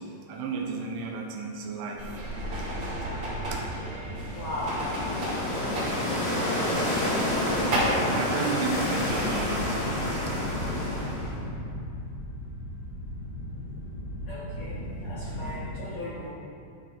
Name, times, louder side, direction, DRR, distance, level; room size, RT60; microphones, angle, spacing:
voice 1, 0.0-2.1 2.7-3.6 8.1-10.4, right 4 dB, 80° right, 1 dB, 3.0 m, -34 dB
sound 1, 2.0-8.1, right 1 dB, 60° right, 1.2 m, -32 dB
sound 2, 4.3-11.4, left 1 dB, 90° left, 0.9 m, -29 dB
voice 2, 4.3-4.8 7.8-8.6 14.2-16.3, left 1 dB, 55° left, -12 dB, 2.3 m, -38 dB
sound 3, 8.6-15.7, left 1 dB, 70° left, 2.9 m, -35 dB
12.5 x 4.1 x 4.5 m, 2.5 s
omnidirectional pair, 5.9 m